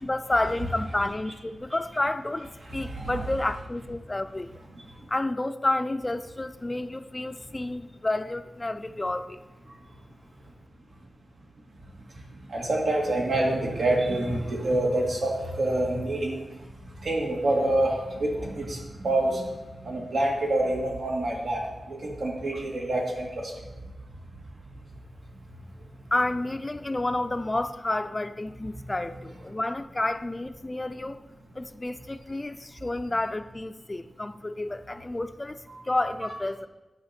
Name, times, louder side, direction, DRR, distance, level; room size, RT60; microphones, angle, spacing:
voice 1, 0.0-4.6 5.1-9.4 26.1-31.2 31.5-36.7, left 2 dB, 25° left, 11 dB, 0.4 m, -30 dB
voice 2, 2.8-3.2 12.5-16.4 17.0-19.5 19.8-23.5 35.7-35.8, right 1 dB, 80° right, -2 dB, 2.1 m, -27 dB
10.5 x 5.8 x 4.3 m, 1.1 s
wide cardioid pair, 85°, 0 cm